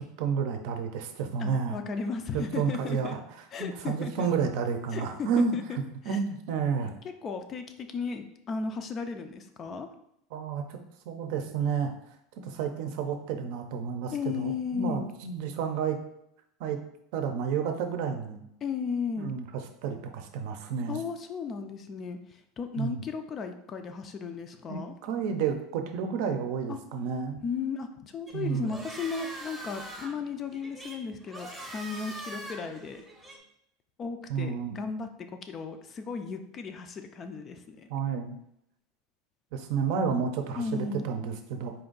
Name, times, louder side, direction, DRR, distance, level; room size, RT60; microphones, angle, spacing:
voice 1, 0.0-1.8 2.3-3.2 3.6-5.6 6.1-6.9 10.3-10.8 11.1-11.9 12.4-16.0 16.6-16.8 17.1-18.4 19.2-19.4 19.8-21.0 22.8-23.0 24.7-27.4 28.3-28.7 34.3-34.7 37.9-38.4 39.5-41.7, right 6 dB, 65° right, 6 dB, 0.6 m, -30 dB
voice 2, 1.4-3.2 3.5-4.3 4.9-5.8 6.1-6.2 7.2-9.9 14.1-15.1 18.6-19.3 20.9-24.9 26.7-26.8 27.4-33.1 34.0-37.9 40.6-41.0, left 5 dB, 30° left, 7 dB, 0.4 m, -35 dB
sound 1, 28.3-33.4, right 1 dB, 5° right, 0.7 m, -43 dB
4.4 x 2.6 x 3.8 m, 0.76 s
supercardioid pair, 150°, 0 cm